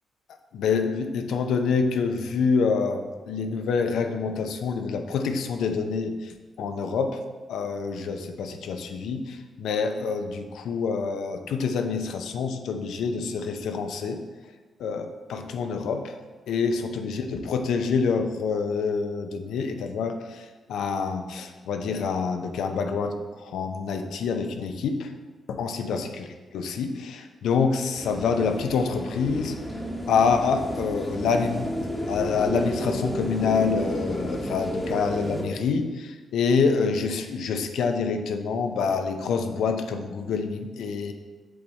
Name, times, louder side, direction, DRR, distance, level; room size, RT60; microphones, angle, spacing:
voice 1, 0.5-7.2 7.5-14.2 14.8-16.1 16.5-25.1 25.5-26.2 26.5-29.5 30.1-31.7 32.1-41.1, left 5 dB, 85° left, 6 dB, 0.5 m, -27 dB
sound 1, 27.9-35.4, equal, 10° left, 1.0 m, -31 dB
7.8 x 3.5 x 4.0 m, 1.3 s
cardioid pair, 95°, 0 cm